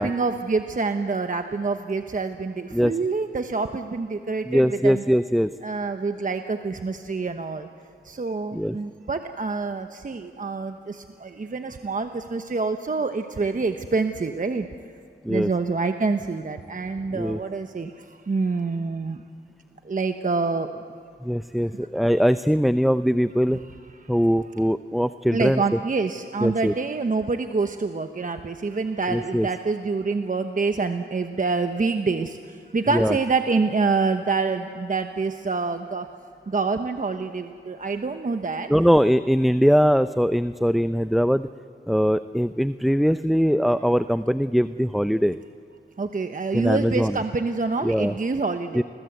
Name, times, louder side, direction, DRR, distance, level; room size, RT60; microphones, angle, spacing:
voice 1, 0.0-5.0 5.6-7.7 8.1-10.7 11.2-14.7 15.3-17.9 18.3-19.2 19.9-20.7 25.3-32.3 32.7-36.0 36.5-38.7 46.0-48.8, right 4 dB, 40° right, 7 dB, 1.1 m, -26 dB
voice 2, 4.5-5.5 8.5-8.8 15.2-15.5 17.1-17.4 21.2-23.6 24.1-25.6 26.4-26.7 29.1-29.5 32.9-33.2 38.7-41.5 41.9-45.4 46.5-47.2 47.8-48.1 48.7-48.8, equal, ahead, 12 dB, 0.5 m, -21 dB
29.5 x 21.5 x 8.1 m, 2.4 s
wide cardioid pair, 75°, 20 cm